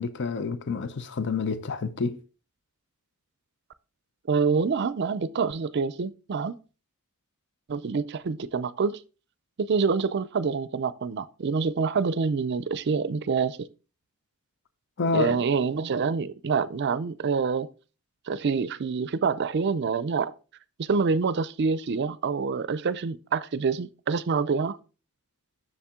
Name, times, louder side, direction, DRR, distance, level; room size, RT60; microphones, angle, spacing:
voice 1, 0.0-2.2 15.0-15.4, left 4 dB, 50° left, 0.6 m, -28 dB
voice 2, 4.3-6.6 7.7-9.0 9.6-13.6 15.1-17.7 18.3-20.3 20.8-24.8, right 5 dB, 50° right, 0.4 m, -26 dB
7.2 x 6.7 x 3.6 m
head